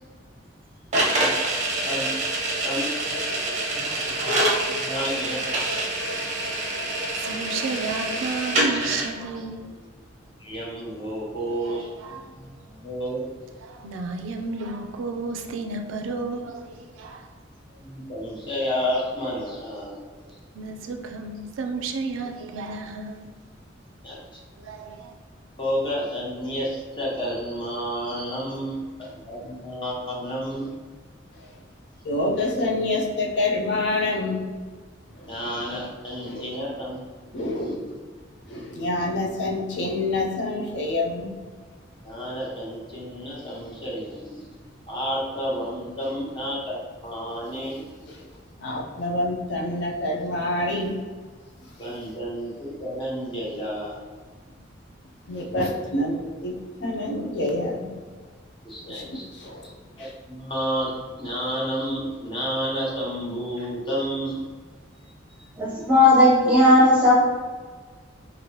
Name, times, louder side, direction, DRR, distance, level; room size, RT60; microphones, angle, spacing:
sound 1, 0.9-9.1, right 1 dB, 35° right, 0.6 m, -26 dB
voice 1, 1.8-2.1 2.6-2.9 3.4-5.4 5.7-6.0 10.4-11.9 12.3-13.3 17.8-20.0 24.0-24.2 25.6-30.7 35.3-37.8 42.0-44.5 44.9-47.8 51.8-54.0 58.6-59.2 59.6-64.4, equal, 25° left, -6 dB, 0.8 m, -31 dB
voice 2, 3.0-4.3 4.9-5.1 7.2-9.8 11.5-12.3 13.6-17.3 20.5-23.3 24.6-25.1, right 3 dB, 85° right, 4 dB, 0.4 m, -33 dB
voice 3, 32.0-34.4 35.2-35.3 36.2-36.5 37.3-37.9 38.5-41.3 48.1-48.2 48.6-51.0 55.3-57.9 58.8-59.7 60.0-60.1, left 2 dB, 60° left, -1 dB, 0.4 m, -27 dB
voice 4, 65.6-67.1, left 1 dB, 5° right, -7 dB, 0.9 m, -16 dB
3.0 x 2.5 x 2.9 m, 1.5 s
head